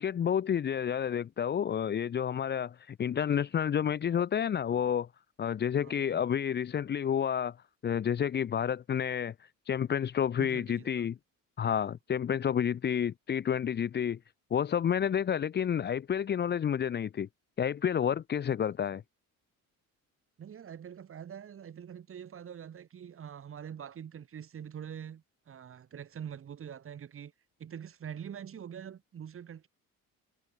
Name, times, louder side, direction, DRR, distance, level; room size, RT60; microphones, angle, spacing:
voice 1, 0.0-5.1 5.4-7.6 7.8-11.2 11.6-14.2 14.5-17.3 17.6-19.0, left 8 dB, 30° left, 0.8 m, -30 dB
voice 2, 5.8-6.3 10.4-11.1 11.6-11.8 20.4-27.3 27.6-29.7, right 8 dB, 40° right, 3.3 m, -44 dB
cardioid pair, 130°, 33 cm